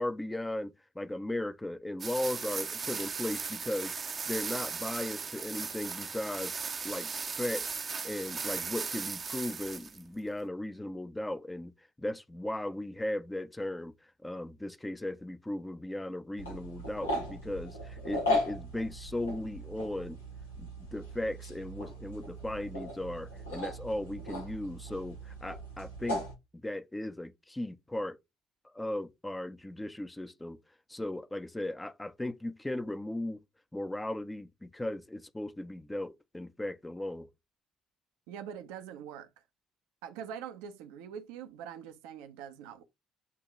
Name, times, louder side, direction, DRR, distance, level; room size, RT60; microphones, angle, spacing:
voice 1, 0.0-6.6 6.8-7.1 7.4-7.7 8.0-11.7 12.0-13.9 14.2-20.2 20.6-26.2 26.5-28.2 28.7-30.6 30.9-33.4 33.7-37.3, left 1 dB, 10° left, 0.8 m, -37 dB
sound 1, 2.0-10.0, right 5 dB, 35° right, 0.8 m, -37 dB
sound 2, 16.4-26.3, left 1 dB, 85° left, 1.7 m, -37 dB
voice 2, 38.3-39.3 40.0-42.8, right 8 dB, 70° right, 0.9 m, -43 dB
8.5 x 2.9 x 4.7 m
figure-of-eight pair, 55°, 0 cm